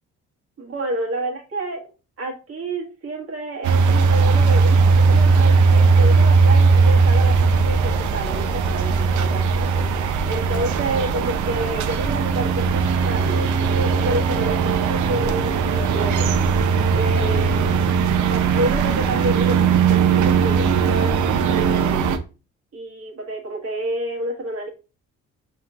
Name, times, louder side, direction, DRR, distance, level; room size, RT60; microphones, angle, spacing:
voice 1, 0.6-1.8 2.2-9.9 10.2-16.3 16.9-17.8 18.3-21.1 21.5-22.1 22.7-24.7, right 1 dB, 50° right, 1 dB, 1.5 m, -29 dB
sound 1, 3.6-22.2, right 5 dB, 75° right, 0.6 m, -18 dB
5.5 x 3.1 x 2.3 m, 0.32 s
cardioid pair, 90°, 30 cm